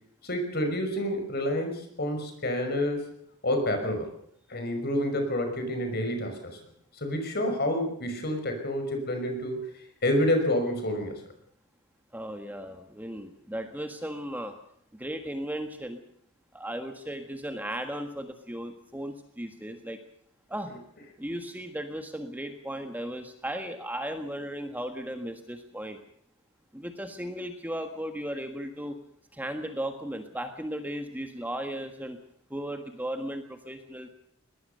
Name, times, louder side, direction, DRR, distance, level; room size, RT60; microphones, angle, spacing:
voice 1, 0.2-3.1 3.4-4.1 4.5-6.6 7.0-9.6 10.0-11.2, left 1 dB, 50° left, 5 dB, 5.6 m, -28 dB
voice 2, 12.1-14.6 14.9-16.0 16.5-20.0 20.5-20.7 21.2-26.0 26.7-29.0 29.3-32.2 32.5-34.1, right 1 dB, 10° right, 6 dB, 1.6 m, -36 dB
22.0 x 19.0 x 6.8 m, 0.68 s
head